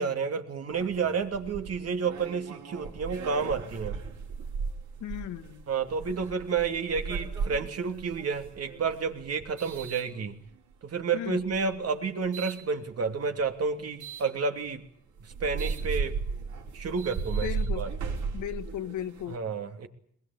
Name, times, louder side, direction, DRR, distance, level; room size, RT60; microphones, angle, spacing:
voice 1, 0.0-4.0 5.7-10.3 10.8-14.8 15.2-16.2 16.7-17.9 19.3-19.9, right 5 dB, 55° right, 6 dB, 2.9 m, -30 dB
sound 1, 0.7-10.7 11.4-12.6 14.0-14.3 14.8-14.9 15.2-19.4, right 5 dB, 70° right, 4.9 m, -36 dB
voice 2, 5.0-5.6 11.1-11.4 17.4-17.9 18.3-19.4, left 11 dB, 75° left, 10 dB, 1.8 m, -36 dB
21.5 x 21.5 x 8.6 m, 0.66 s
cardioid pair, 90°, 30 cm